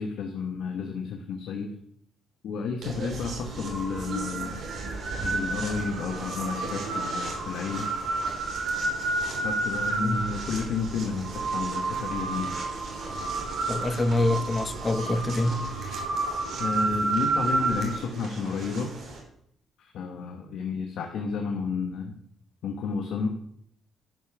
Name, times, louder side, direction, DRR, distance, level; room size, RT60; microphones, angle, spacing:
voice 1, 0.0-1.7 2.4-4.6 5.2-7.9 9.4-12.5 16.6-18.9 19.8-22.2 22.6-23.3, left 5 dB, 75° left, 1.1 m, -31 dB
sound 1, 2.8-19.2, right 3 dB, 65° right, 3.1 m, -31 dB
voice 2, 13.7-15.6, left 2 dB, 30° left, 0.8 m, -25 dB
10.5 x 5.6 x 6.0 m
cardioid pair, 90°, 0 cm